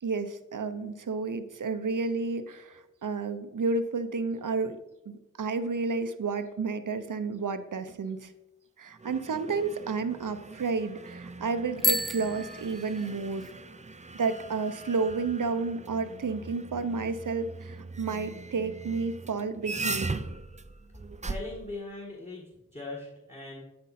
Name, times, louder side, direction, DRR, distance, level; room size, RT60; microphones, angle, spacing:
voice 1, 0.0-4.8 5.1-8.3 8.8-13.5 14.1-20.2, right 4 dB, 70° right, 11 dB, 0.7 m, -31 dB
sound 1, 8.9-21.7, right 3 dB, 20° right, 0.5 m, -40 dB
Bicycle bell, 11.8-13.5, left 1 dB, ahead, 1.0 m, -31 dB
voice 2, 21.2-22.5 22.7-23.6, left 2 dB, 20° left, -1 dB, 1.6 m, -40 dB
12.0 x 5.2 x 4.2 m, 0.96 s
wide cardioid pair, 85°, 32 cm